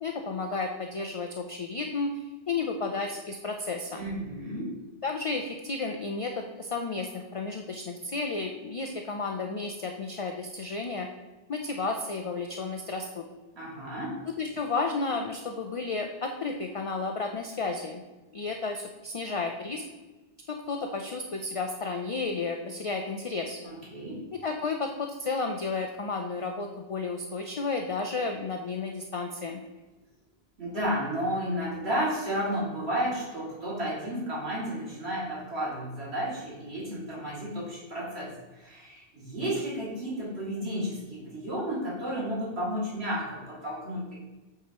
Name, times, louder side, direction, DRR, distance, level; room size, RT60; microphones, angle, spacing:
voice 1, 0.0-4.0 5.0-11.1 11.5-13.2 14.3-18.0 18.3-19.8 20.5-23.6 24.3-29.6, left 3 dB, 50° left, 3 dB, 0.4 m, -32 dB
voice 2, 3.9-4.7 13.5-14.2 23.6-24.2 30.6-44.2, equal, 75° right, -7 dB, 2.6 m, -32 dB
8.5 x 4.8 x 2.9 m, 1.2 s
omnidirectional pair, 1.1 m